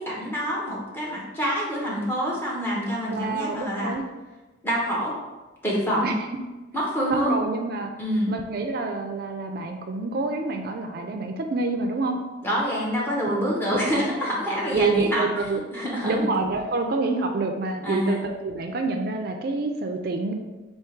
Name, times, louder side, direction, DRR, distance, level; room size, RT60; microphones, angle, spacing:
voice 1, 0.0-3.9 4.6-5.1 5.6-6.1 6.7-7.4 8.0-8.3 12.4-15.3 15.7-16.3 17.8-18.2, equal, 10° left, -5 dB, 0.9 m, -26 dB
voice 2, 3.1-4.0 6.0-6.1 7.1-7.9 8.3-12.2 13.7-14.1 14.7-15.6 16.0-20.3, right 3 dB, 50° right, 4 dB, 0.4 m, -27 dB
3.5 x 2.8 x 4.5 m, 1.2 s
head